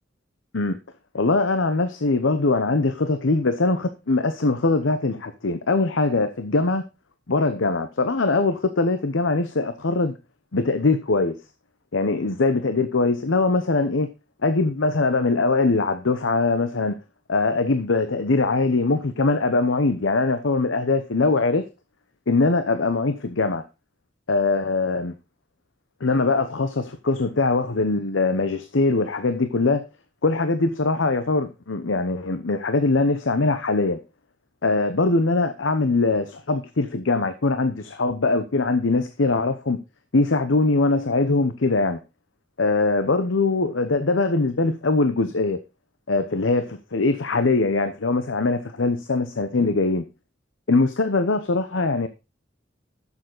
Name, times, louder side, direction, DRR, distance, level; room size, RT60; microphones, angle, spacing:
voice 1, 1.1-6.8 7.3-10.1 10.5-11.4 11.9-14.1 14.4-16.9 17.3-21.7 22.3-23.6 24.3-25.1 26.0-29.8 30.2-34.0 34.6-39.8 40.1-42.0 42.6-45.6 46.1-50.0 50.7-52.1, left 3 dB, 80° left, 0.9 m, -22 dB
11.0 x 7.2 x 3.9 m
head